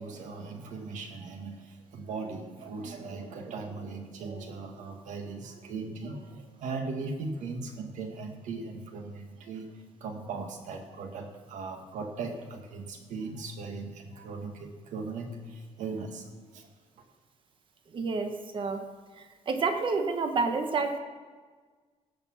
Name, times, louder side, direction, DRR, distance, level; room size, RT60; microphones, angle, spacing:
voice 1, 0.0-9.7 10.0-16.7, right 4 dB, 90° right, 4 dB, 1.7 m, -38 dB
voice 2, 17.9-18.8 19.5-21.0, right 4 dB, 45° right, 6 dB, 1.2 m, -29 dB
17.5 x 7.0 x 5.8 m, 1.5 s
cardioid pair, 160°, 12 cm